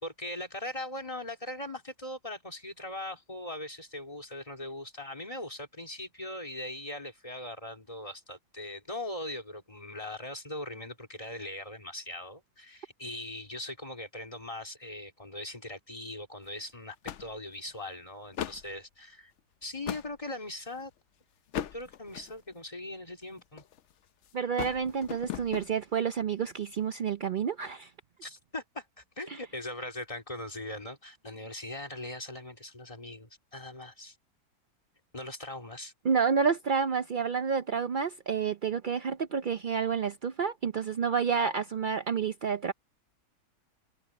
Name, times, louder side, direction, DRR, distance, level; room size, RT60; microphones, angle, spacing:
voice 1, 0.0-19.3 19.6-20.9 21.7-23.6 28.2-34.2 35.1-35.9, left 1 dB, 20° left, 2.9 m, -40 dB
sound 1, 16.4-16.6 17.1-17.7 18.2-18.7 19.4-20.1 20.7-21.0 21.5-22.5 23.2-23.9 24.2-25.7, left 10 dB, 60° left, 0.8 m, -38 dB
voice 2, 24.3-27.9 29.3-29.4 36.0-42.7, right 6 dB, 75° right, 0.4 m, -29 dB
omnidirectional pair, 1.7 m